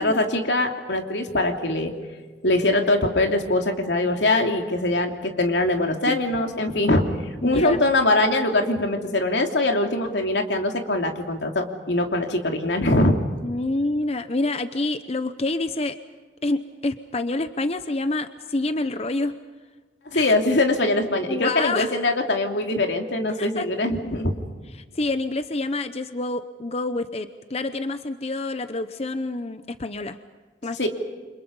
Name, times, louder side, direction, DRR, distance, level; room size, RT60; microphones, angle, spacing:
voice 1, 0.0-1.9 2.4-7.0 7.4-13.2 20.1-24.3 30.8-30.9, left 2 dB, 85° left, 3 dB, 2.9 m, -22 dB
voice 2, 7.4-7.8 13.4-15.9 16.4-19.4 20.1-20.3 21.3-21.9 23.4-23.7 24.9-30.2 30.6-30.9, left 2 dB, 35° left, 10 dB, 0.8 m, -27 dB
29.5 x 26.0 x 5.4 m, 1.4 s
head